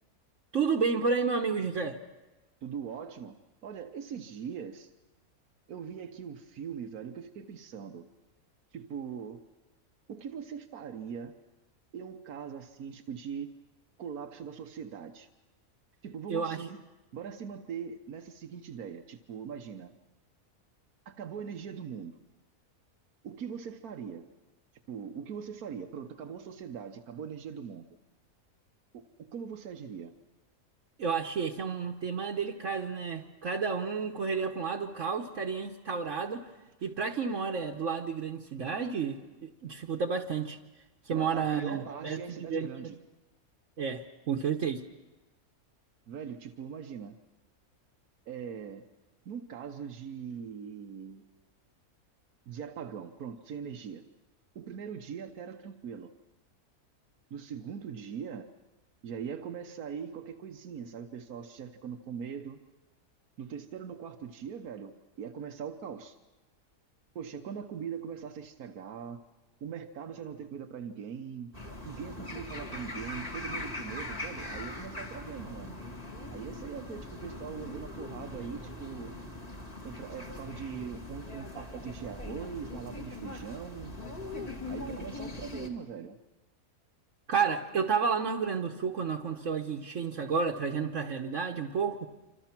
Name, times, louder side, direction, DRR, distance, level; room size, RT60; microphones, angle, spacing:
voice 1, 0.5-2.0 16.3-16.7 31.0-36.5 36.8-40.6 41.0-42.2 42.5-42.7 43.8-44.8 87.3-92.1, right 5 dB, 60° right, 1 dB, 1.4 m, -31 dB
voice 2, 2.6-3.4 3.6-4.9 5.7-8.1 8.7-9.4 10.1-11.3 11.9-13.5 14.0-15.3 16.0-16.8 17.1-19.9 21.1-22.1 23.2-24.2 24.9-27.8 28.9-30.1 41.1-43.0 46.1-47.2 48.3-48.8 49.2-51.2 52.5-54.0 54.5-56.1 57.3-58.5 59.0-62.6 63.4-66.2 67.1-69.2 69.6-71.5 71.8-75.8 76.3-79.2 79.8-84.0 84.6-86.2, right 7 dB, 85° right, 6 dB, 1.5 m, -41 dB
sound 1, 71.5-85.7, left 2 dB, 25° left, 2.3 m, -41 dB
27.0 x 26.0 x 5.9 m, 1.1 s
omnidirectional pair, 1.5 m